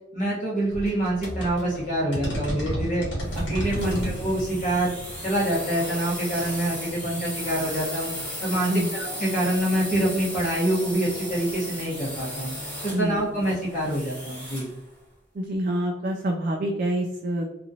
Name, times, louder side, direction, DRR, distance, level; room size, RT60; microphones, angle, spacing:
voice 1, 0.1-3.0 3.5-5.0 5.2-8.1 8.4-12.5 12.8-14.7, right 1 dB, 40° left, -6 dB, 1.0 m, -26 dB
Wood percussion, 0.7-7.2, equal, 65° left, 1.2 m, -33 dB
sound 1, 3.2-14.8, equal, 5° left, 0.8 m, -36 dB
voice 2, 12.9-13.3 15.3-17.5, right 1 dB, 45° right, 0 dB, 0.3 m, -26 dB
3.0 x 2.5 x 2.6 m, 0.95 s
head